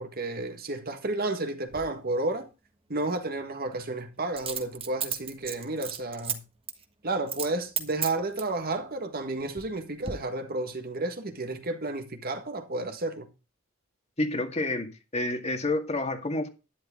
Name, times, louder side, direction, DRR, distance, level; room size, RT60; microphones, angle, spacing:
voice 1, 0.0-2.5 2.9-6.4 7.0-13.3, right 2 dB, 45° right, 1.7 m, -32 dB
Coin (dropping), 1.7-1.8 4.4-6.4 6.7-6.8 7.3-7.5 7.8-8.6 9.2-9.7 10.0-10.1, right 7 dB, 30° right, 1.5 m, -33 dB
voice 2, 14.2-16.5, left 2 dB, 30° left, 2.0 m, -29 dB
11.5 x 10.5 x 3.8 m
head